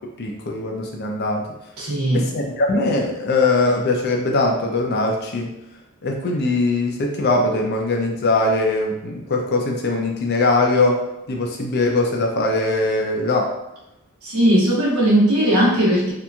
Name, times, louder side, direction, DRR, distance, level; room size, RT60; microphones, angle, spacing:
voice 1, 0.2-1.5 2.1-5.6 6.0-13.5, left 2 dB, 50° left, 1 dB, 0.5 m, -21 dB
voice 2, 1.8-2.3 14.2-16.1, right 1 dB, 90° right, -5 dB, 0.9 m, -18 dB
2.9 x 2.5 x 2.3 m, 0.91 s
head